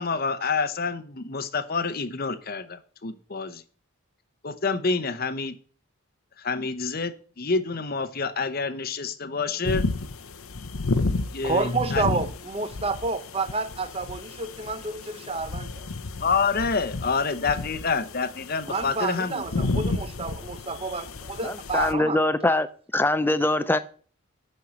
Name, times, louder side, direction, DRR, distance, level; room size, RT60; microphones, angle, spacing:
voice 1, 0.0-3.6 4.4-5.5 6.4-9.8 11.3-12.0 16.2-19.7, left 4 dB, 40° left, 0.8 m, -27 dB
sound 1, 9.6-21.9, left 3 dB, 75° left, 0.8 m, -32 dB
voice 2, 11.4-15.7 18.7-22.2, right 3 dB, 25° right, 0.7 m, -29 dB
voice 3, 21.4-22.7 22.9-23.8, left 1 dB, 10° left, 0.4 m, -23 dB
8.7 x 5.5 x 7.4 m
head